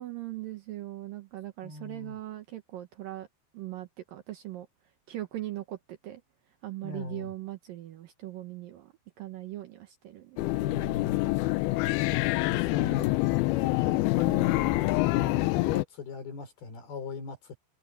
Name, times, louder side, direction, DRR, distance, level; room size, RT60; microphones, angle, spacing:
voice 1, 0.0-3.3 3.5-4.7 5.1-6.2 6.6-10.7 15.6-15.7, right 15 dB, 70° right, 2.3 m, -40 dB
voice 2, 1.6-2.2 6.8-7.3 10.6-11.5 12.5-13.1 13.6-17.6, left 4 dB, 60° left, 6.9 m, -40 dB
sound 1, 10.4-15.8, left 20 dB, 80° left, 2.3 m, -26 dB
omnidirectional pair, 4.9 m